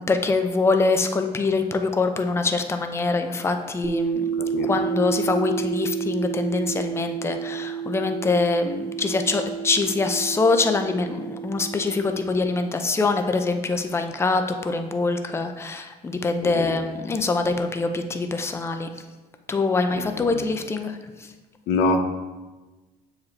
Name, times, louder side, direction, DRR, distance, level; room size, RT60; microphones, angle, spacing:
voice 1, 0.0-4.2 4.6-18.9 19.5-21.3, left 3 dB, 15° left, 7 dB, 0.5 m, -24 dB
sound 1, 3.8-12.7, right 7 dB, 25° right, 1.0 m, -30 dB
voice 2, 4.4-4.7 16.4-16.8 19.9-20.2 21.7-22.0, left 3 dB, 90° left, 6 dB, 0.7 m, -25 dB
7.0 x 4.8 x 3.2 m, 1.2 s
cardioid pair, 110°, 17 cm